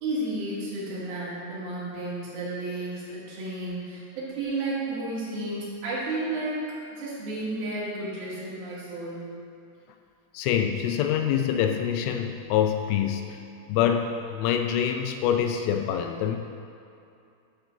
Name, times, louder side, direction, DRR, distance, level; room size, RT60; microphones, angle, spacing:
voice 1, 0.0-9.2, right 2 dB, 65° right, -8 dB, 3.4 m, -32 dB
voice 2, 10.3-13.4 13.7-16.4, left 9 dB, 85° left, 5 dB, 2.2 m, -25 dB
10.0 x 3.9 x 6.5 m, 2.6 s
omnidirectional pair, 4.9 m